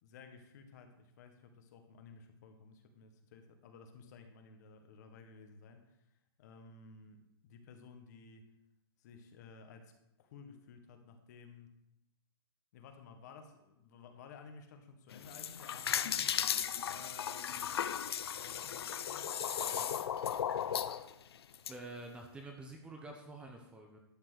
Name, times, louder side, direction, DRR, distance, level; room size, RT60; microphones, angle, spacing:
voice 1, 0.0-8.5 9.0-9.9 10.2-11.7 12.7-16.4 16.8-17.8 18.3-20.1, left 5 dB, 45° left, 6 dB, 1.6 m, -55 dB
sound 1, 15.1-21.7, left 9 dB, 75° left, 0.7 m, -36 dB
voice 2, 21.7-24.0, right 2 dB, 10° right, 2 dB, 0.9 m, -48 dB
12.0 x 4.5 x 8.1 m, 0.85 s
hypercardioid pair, 160°, 13 cm